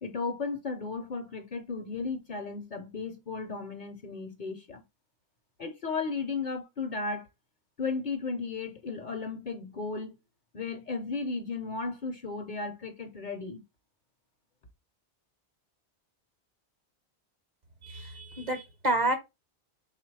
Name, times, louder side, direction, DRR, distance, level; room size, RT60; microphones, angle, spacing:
voice 1, 0.0-4.8 5.6-7.3 7.8-10.2 10.5-13.6, left 4 dB, 50° left, 0.7 m, -35 dB
voice 2, 17.8-19.2, right 2 dB, 45° right, 0.8 m, -29 dB
3.7 x 2.4 x 4.6 m
omnidirectional pair, 1.1 m